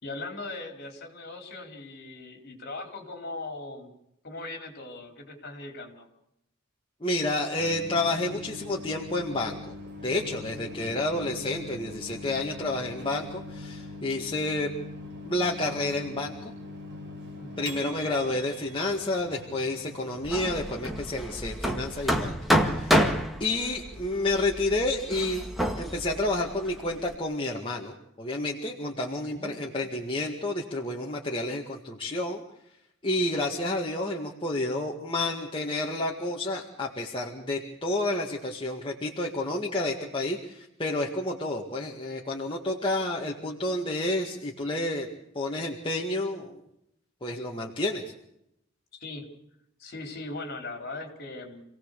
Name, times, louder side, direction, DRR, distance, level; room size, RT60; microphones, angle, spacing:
voice 1, 0.0-3.9 4.2-6.1 10.5-11.0 17.4-17.8 29.2-29.5 48.9-49.3 49.8-51.6, left 2 dB, 50° left, 4 dB, 4.3 m, -40 dB
voice 2, 7.0-9.7 10.0-14.7 15.2-16.5 17.6-22.3 22.7-23.0 23.4-25.4 25.8-32.4 33.0-46.6 47.2-48.0, left 2 dB, 25° left, -1 dB, 1.9 m, -30 dB
Microwave oven, 7.6-21.0, left 2 dB, 55° right, 4.5 m, -42 dB
Hammer, 20.2-27.1, equal, ahead, 1.8 m, -28 dB
28.0 x 17.5 x 6.8 m, 0.81 s
head